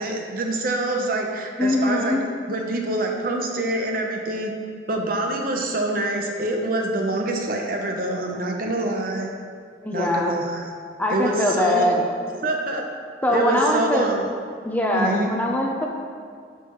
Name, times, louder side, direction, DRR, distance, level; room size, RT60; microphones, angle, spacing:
voice 1, 0.0-2.2 2.5-4.5 4.9-9.3 9.9-10.7 11.1-12.1 12.4-12.9 13.3-14.3 14.9-15.3, right 1 dB, 50° right, 1 dB, 0.8 m, -26 dB
voice 2, 1.6-2.2 9.8-10.3 11.0-12.0 13.2-14.1 14.6-15.9, left 1 dB, 10° left, -1 dB, 0.6 m, -22 dB
12.0 x 4.7 x 3.1 m, 2.2 s
head